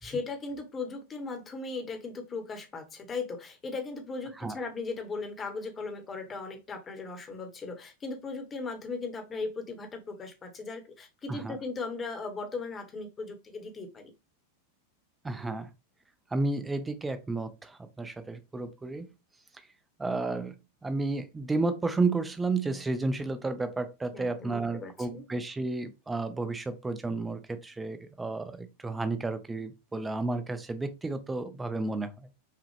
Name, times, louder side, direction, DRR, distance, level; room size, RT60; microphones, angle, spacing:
voice 1, 0.0-14.1 24.1-25.2, left 3 dB, 20° left, 1.1 m, -37 dB
voice 2, 15.2-15.7 16.3-19.1 20.0-20.6 20.8-32.3, right 3 dB, 10° right, 0.6 m, -32 dB
5.7 x 2.4 x 3.2 m
figure-of-eight pair, 90°, 0 cm